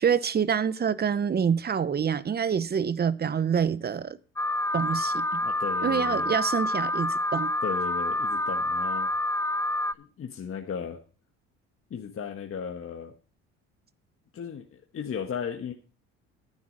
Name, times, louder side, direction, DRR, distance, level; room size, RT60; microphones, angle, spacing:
voice 1, 0.0-4.2 4.7-5.4 5.8-7.5, right 7 dB, 30° right, 0.9 m, -26 dB
Alarm, 4.4-9.9, left 1 dB, 10° left, 0.5 m, -28 dB
voice 2, 5.4-6.3 7.6-9.1 10.0-11.0 11.9-13.2 14.3-15.7, left 7 dB, 40° left, 1.5 m, -35 dB
10.5 x 9.5 x 4.0 m
supercardioid pair, 80°, 32 cm